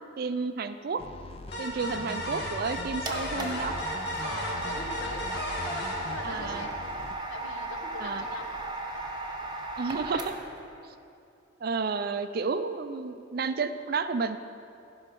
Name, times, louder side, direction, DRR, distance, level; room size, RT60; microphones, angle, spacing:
voice 1, 0.2-1.0 1.6-3.8 6.2-6.7 8.0-8.2 9.8-10.4 10.8-10.9 11.6-14.4, right 4 dB, 45° right, 11 dB, 0.4 m, -31 dB
sound 1, 1.0-7.1, left 2 dB, 30° left, 0.3 m, -42 dB
sound 2, 1.5-6.9, equal, 55° left, 1.6 m, -36 dB
voice 2, 1.7-2.4 4.2-5.3 6.1-6.8 7.3-8.5 8.9-9.3, left 3 dB, 70° left, 4 dB, 1.1 m, -43 dB
sound 3, 2.5-10.6, right 2 dB, 20° right, 0.8 m, -36 dB
15.0 x 5.4 x 5.3 m, 2.6 s
head